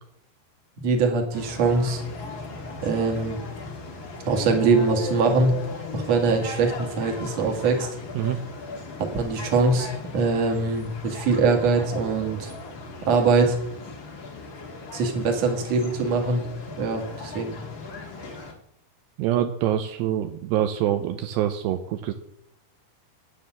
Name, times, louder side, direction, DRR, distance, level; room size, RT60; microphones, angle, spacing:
voice 1, 0.8-2.0 2.8-3.4 4.3-5.5 5.9-7.9 9.0-12.5 13.0-13.6 14.9-16.4 16.8-17.6, right 4 dB, 45° right, 2 dB, 2.6 m, -22 dB
sound 1, 1.3-18.5, left 3 dB, 50° left, 1.4 m, -39 dB
sound 2, 4.3-6.9, left 6 dB, 70° left, 3.0 m, -35 dB
voice 2, 19.2-22.1, right 11 dB, 80° right, 7 dB, 2.7 m, -25 dB
10.0 x 9.5 x 7.6 m, 0.73 s
omnidirectional pair, 5.2 m